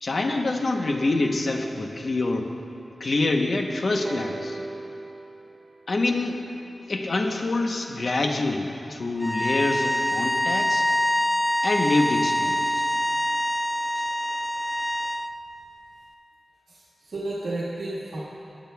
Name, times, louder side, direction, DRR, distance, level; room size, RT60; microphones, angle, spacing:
voice 1, 0.0-2.5 3.0-4.6 5.9-6.4 6.9-10.9 11.6-12.8, left 2 dB, 55° left, 3 dB, 0.9 m, -26 dB
sound 1, 4.0-7.9 8.8-8.9, right 2 dB, 50° right, 1.2 m, -40 dB
sound 2, 9.2-15.3, equal, 5° left, 0.3 m, -25 dB
voice 2, 16.7-18.2, right 2 dB, 90° right, -9 dB, 1.5 m, -33 dB
18.5 x 11.0 x 2.3 m, 3.0 s
wide cardioid pair, 105°, 0 cm